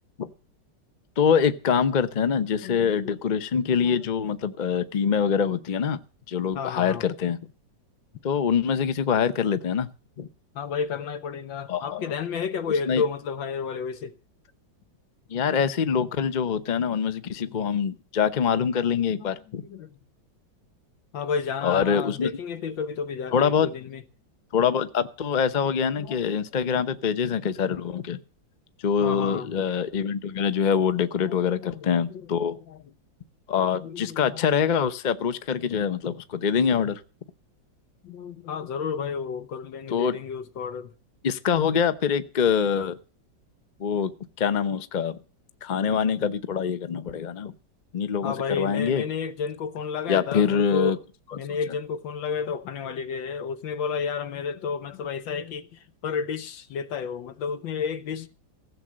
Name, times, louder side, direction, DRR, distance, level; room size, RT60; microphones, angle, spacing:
voice 1, 1.2-6.0 6.3-7.4 8.2-9.9 10.2-10.3 11.7-12.1 12.9-13.0 15.3-19.6 21.6-22.3 23.3-23.7 24.5-28.2 28.8-32.5 33.5-37.0 39.9-40.2 41.2-43.0 43.8-44.1 44.4-45.2 45.6-47.5 47.9-49.0 50.1-51.0, left 7 dB, 40° left, 0.6 m, -24 dB
voice 2, 2.6-3.1 3.7-4.0 6.5-7.0 10.6-14.1 19.2-19.4 19.6-19.9 21.1-24.0 26.0-26.2 29.0-29.5 31.2-32.8 33.7-34.5 38.0-40.9 48.2-51.0 51.3-58.3, left 6 dB, 80° left, 1.8 m, -31 dB
16.0 x 7.6 x 7.5 m
omnidirectional pair, 2.0 m